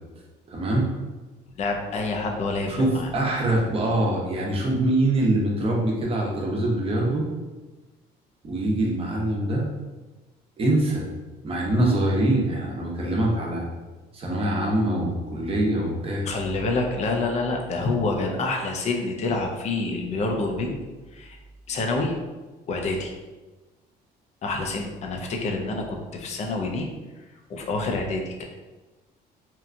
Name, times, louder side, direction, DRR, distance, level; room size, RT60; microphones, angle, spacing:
voice 1, 0.5-0.9 2.7-7.3 8.4-9.7 10.6-11.0 11.4-13.6 14.1-16.3, right 1 dB, 35° right, -2 dB, 0.7 m, -24 dB
voice 2, 1.6-3.1 16.3-20.8 21.1-21.4 21.7-22.1 22.7-23.1 24.4-26.9 27.5-28.4, left 3 dB, 40° left, 2 dB, 0.5 m, -27 dB
2.9 x 2.2 x 2.5 m, 1.2 s
cardioid pair, 110°, 17 cm